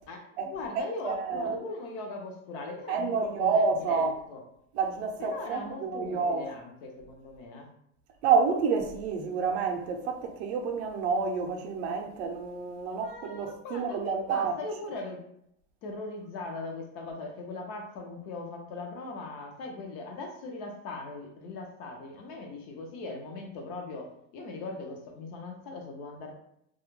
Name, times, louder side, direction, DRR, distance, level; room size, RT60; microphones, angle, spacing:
voice 1, 0.1-4.4 5.2-7.7 13.0-15.2 15.8-26.3, left 2 dB, 40° left, 0.5 m, -40 dB
voice 2, 1.0-1.6 2.9-4.1 4.7-6.5 8.2-14.5, right 5 dB, 60° right, 0.5 m, -28 dB
2.3 x 2.0 x 3.0 m
supercardioid pair, 150°, 37 cm